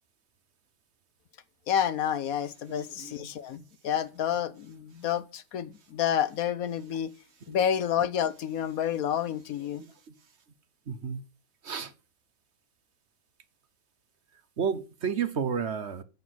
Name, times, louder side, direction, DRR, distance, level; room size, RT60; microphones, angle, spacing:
voice 1, 1.7-7.1 7.5-9.8, left 9 dB, 80° left, 1.3 m, -29 dB
voice 2, 2.7-3.3 7.5-7.6 10.9-11.2 11.6-11.9 14.6-16.0, right 7 dB, 50° right, 1.2 m, -32 dB
9.3 x 8.5 x 7.8 m
omnidirectional pair, 1.5 m